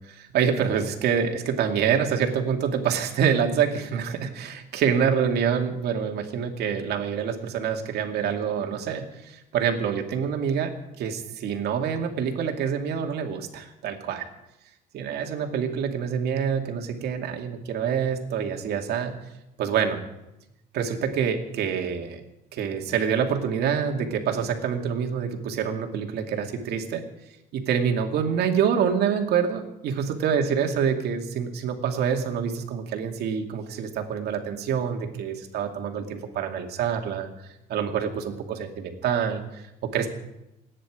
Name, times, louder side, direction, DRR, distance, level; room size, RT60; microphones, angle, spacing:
voice 1, 0.0-14.3 14.9-19.1 19.6-20.0 20.7-22.2 22.5-27.0 27.5-40.1, right 7 dB, 70° right, 3 dB, 2.6 m, -26 dB
28.5 x 10.5 x 5.0 m, 0.91 s
cardioid pair, 110°, 17 cm